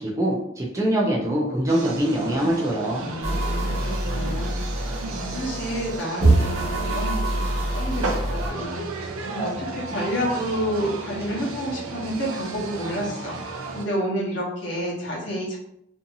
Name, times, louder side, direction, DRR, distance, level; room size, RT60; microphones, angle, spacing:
voice 1, 0.0-3.0, right 1 dB, 15° right, -3 dB, 0.4 m, -23 dB
sound 1, 1.7-13.8, right 3 dB, 80° right, 0.4 m, -33 dB
voice 2, 3.0-4.6 5.1-15.6, equal, 55° left, -5 dB, 0.9 m, -30 dB
sound 2, 3.2-8.5, right 1 dB, 30° right, 1.1 m, -25 dB
2.7 x 2.5 x 2.6 m, 0.75 s
head